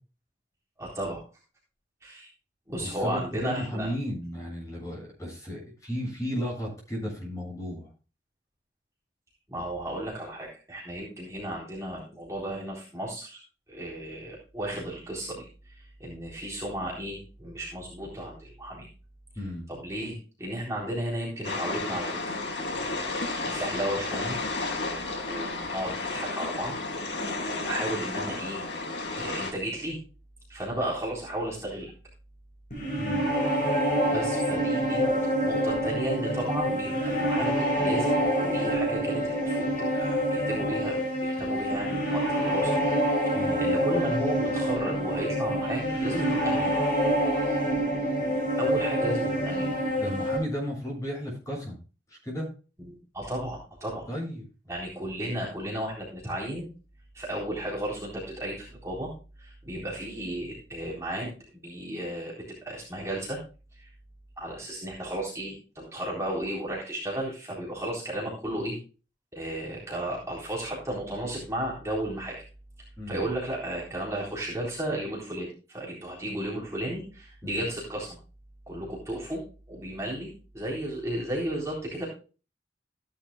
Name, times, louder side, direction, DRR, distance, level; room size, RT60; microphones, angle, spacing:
voice 1, 0.8-1.2 2.0-2.3 2.7-3.9 9.5-13.4 13.7-18.9 19.7-22.2 22.5-24.4 25.0-26.8 27.1-28.6 29.1-30.0 30.5-31.9 34.1-42.8 43.3-46.7 48.6-49.7 52.8-54.1 54.7-56.7 57.1-59.1 59.4-61.3 61.6-63.4 63.8-63.9 64.4-68.8 69.3-72.4 73.1-78.2 78.7-79.4 79.7-82.1, right 1 dB, 15° right, -4 dB, 3.9 m, -34 dB
voice 2, 2.8-7.9 19.4-19.7 33.0-33.3 43.3-43.6 50.0-51.8 52.1-52.5 54.1-54.4 73.0-73.3 77.4-77.7, equal, 20° left, -1 dB, 7.5 m, -34 dB
sound 1, 21.4-29.5, left 3 dB, 85° left, 5.1 m, -32 dB
sound 2, 32.7-50.4, equal, 45° left, 7.5 m, -26 dB
16.5 x 11.0 x 2.3 m, 0.34 s
head